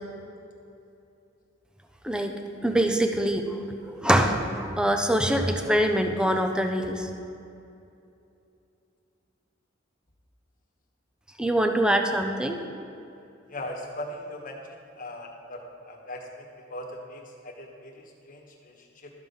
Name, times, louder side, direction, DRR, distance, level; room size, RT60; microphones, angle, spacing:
voice 1, 2.0-7.1 11.4-12.6, right 1 dB, 5° right, 5 dB, 0.6 m, -24 dB
voice 2, 13.5-19.1, left 1 dB, 45° left, 0 dB, 1.3 m, -40 dB
12.5 x 5.5 x 5.5 m, 2.7 s
head